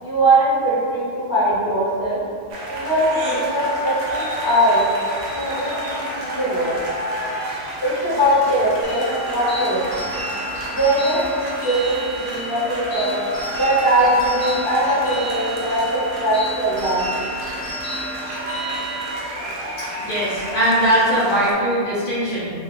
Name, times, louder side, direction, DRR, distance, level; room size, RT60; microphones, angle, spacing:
voice 1, 0.0-2.2 2.7-4.8 5.3-6.8 7.8-10.2 10.7-13.3 13.6-17.2, right 1 dB, 20° right, -14 dB, 0.7 m, -21 dB
sound 1, 2.5-21.5, equal, 85° right, 0.9 m, -30 dB
sound 2, 8.8-19.1, right 1 dB, 75° left, 1.0 m, -31 dB
voice 2, 20.0-22.5, right 1 dB, 45° left, -13 dB, 0.8 m, -20 dB
2.4 x 2.2 x 3.3 m, 2.2 s
omnidirectional pair, 1.1 m